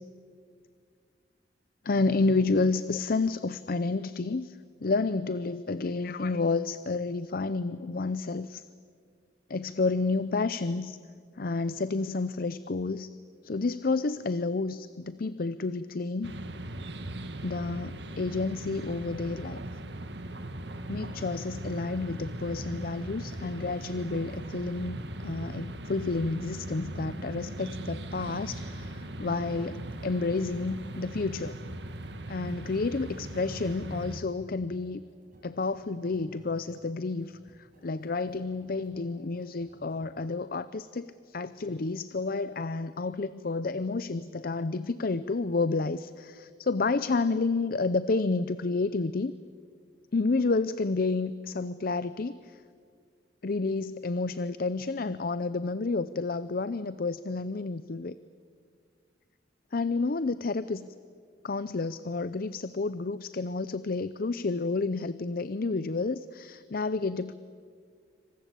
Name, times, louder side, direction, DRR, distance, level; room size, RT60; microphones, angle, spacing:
voice 1, 1.8-8.6 9.5-11.0 11.4-13.1 13.4-16.3 17.4-19.6 20.9-25.0 25.2-31.6 32.3-35.0 35.4-37.4 37.8-49.3 50.1-52.6 53.4-58.2 59.7-60.9 61.4-67.3, left 3 dB, 55° left, 15 dB, 0.6 m, -30 dB
sound 1, 16.2-34.2, right 1 dB, 70° right, 1.8 m, -39 dB
sound 2, 34.8-40.2, equal, 50° right, 5.7 m, -58 dB
27.0 x 25.5 x 8.5 m, 2.1 s
head